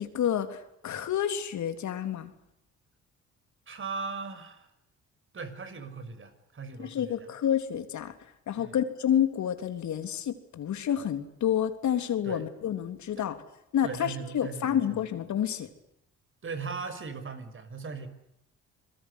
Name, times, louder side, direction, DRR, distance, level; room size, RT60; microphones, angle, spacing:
voice 1, 0.0-2.3 6.8-8.1 8.5-13.4 13.7-15.7, left 9 dB, 70° left, 8 dB, 3.4 m, -29 dB
voice 2, 3.7-4.7 5.3-7.3 8.6-8.8 12.2-12.5 13.2-13.3 13.8-15.0 16.4-18.1, right 4 dB, 40° right, 11 dB, 5.9 m, -39 dB
26.5 x 22.5 x 8.3 m, 0.82 s
cardioid pair, 90°, 30 cm